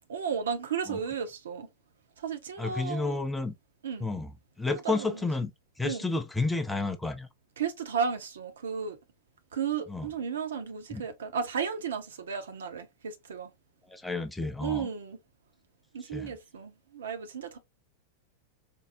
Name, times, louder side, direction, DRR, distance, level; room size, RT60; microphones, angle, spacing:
voice 1, 0.1-1.7 2.2-3.2 3.8-4.1 4.7-5.2 5.8-6.0 7.6-9.0 9.5-13.5 14.6-15.2 15.9-17.6, right 7 dB, 65° right, 0.6 m, -34 dB
voice 2, 2.6-3.5 4.0-4.3 4.6-5.5 5.8-7.3 9.9-10.1 10.9-11.0 13.9-14.9 16.1-16.3, left 3 dB, 5° left, 0.5 m, -31 dB
4.4 x 2.0 x 2.5 m
figure-of-eight pair, 90°, 0 cm